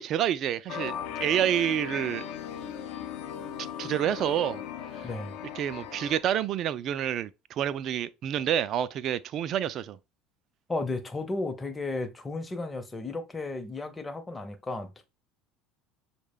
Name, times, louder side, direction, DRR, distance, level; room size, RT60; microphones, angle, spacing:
voice 1, 0.0-2.3 3.8-4.6 5.5-10.0, right 10 dB, 45° right, 0.3 m, -28 dB
sound 1, 0.7-6.2, left 8 dB, 55° left, 0.5 m, -38 dB
voice 2, 10.7-15.1, left 2 dB, 20° left, 0.7 m, -34 dB
6.2 x 2.1 x 3.5 m
figure-of-eight pair, 65°, 0 cm